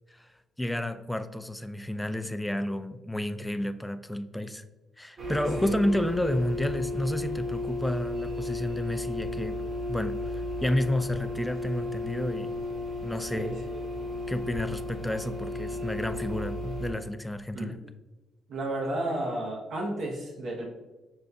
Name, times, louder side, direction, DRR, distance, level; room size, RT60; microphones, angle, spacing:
voice 1, 0.6-4.6 5.0-9.6 9.9-12.5 13.0-13.6 14.3-17.8, left 1 dB, 5° left, 9 dB, 0.3 m, -31 dB
sound 1, 5.2-16.9, left 2 dB, 50° right, 1.4 m, -34 dB
voice 2, 13.3-13.8 17.5-17.8 18.5-20.7, right 1 dB, 65° right, -1 dB, 0.8 m, -32 dB
6.3 x 2.3 x 2.6 m, 1.1 s
cardioid pair, 90°, 0 cm